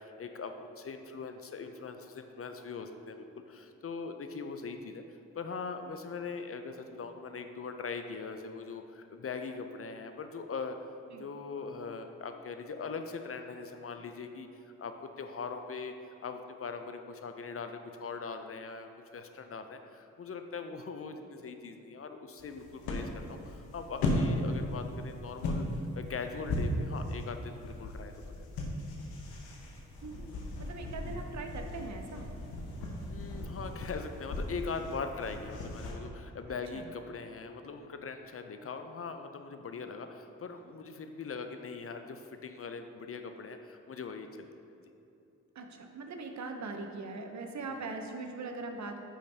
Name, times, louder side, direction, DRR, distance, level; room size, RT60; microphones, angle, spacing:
voice 1, 0.0-5.0 5.3-10.7 11.2-15.9 16.2-25.6 25.9-28.1 33.0-44.5, left 5 dB, 40° left, 7 dB, 0.6 m, -41 dB
sound 1, 22.4-35.9, left 1 dB, 80° left, 1.0 m, -37 dB
voice 2, 30.6-32.3 36.7-36.9 45.6-49.0, right 3 dB, 50° right, 5 dB, 0.8 m, -41 dB
8.6 x 5.2 x 2.8 m, 2.8 s
hypercardioid pair, 40°, 36 cm